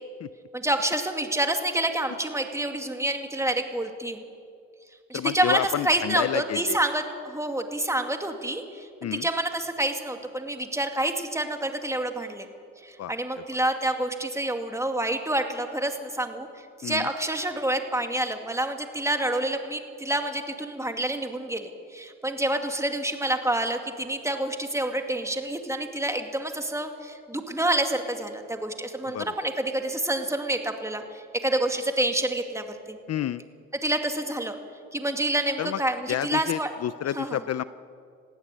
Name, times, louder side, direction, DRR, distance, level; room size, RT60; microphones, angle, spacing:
voice 1, 0.5-4.2 5.1-12.5 12.8-16.5 16.8-33.0 33.7-34.6 34.9-36.7 37.1-37.4, right 1 dB, 10° right, 5 dB, 2.3 m, -28 dB
voice 2, 5.1-6.8 9.0-9.2 13.0-13.1 16.8-17.1 29.1-29.3 33.1-33.4 35.6-35.8 36.1-37.6, left 11 dB, 55° left, 15 dB, 0.6 m, -29 dB
20.0 x 15.5 x 9.8 m, 2.3 s
cardioid pair, 90°, 30 cm